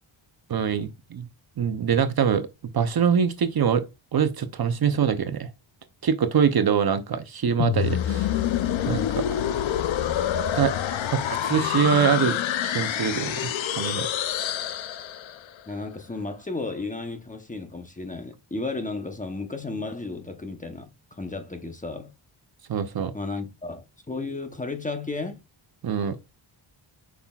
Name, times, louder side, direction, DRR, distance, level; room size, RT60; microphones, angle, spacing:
voice 1, 0.5-1.3 1.6-2.5 2.7-3.8 4.1-5.5 6.0-8.3 8.9-9.2 10.1-10.2 10.5-12.4 12.6-13.5 13.8-14.1 22.7-23.1 25.8-26.2, right 7 dB, 50° right, 0.7 m, -24 dB
sound 1, 7.6-15.5, left 10 dB, 70° left, 0.6 m, -27 dB
voice 2, 15.7-22.1 23.1-25.4, left 3 dB, 15° left, 0.8 m, -33 dB
8.4 x 5.7 x 2.3 m
wide cardioid pair, 155°, 48 cm